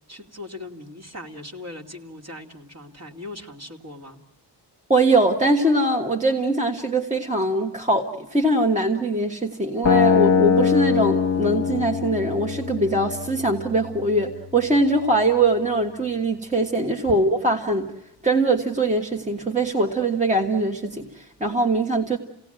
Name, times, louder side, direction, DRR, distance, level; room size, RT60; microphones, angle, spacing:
voice 1, 0.1-4.2, left 2 dB, 35° right, 3 dB, 2.6 m, -39 dB
voice 2, 4.9-17.9 18.2-22.2, right 2 dB, 15° right, 3 dB, 1.6 m, -22 dB
sound 1, 9.8-15.9, left 6 dB, 35° left, 1.3 m, -23 dB
29.0 x 17.5 x 9.0 m, 0.95 s
wide cardioid pair, 130°, 43 cm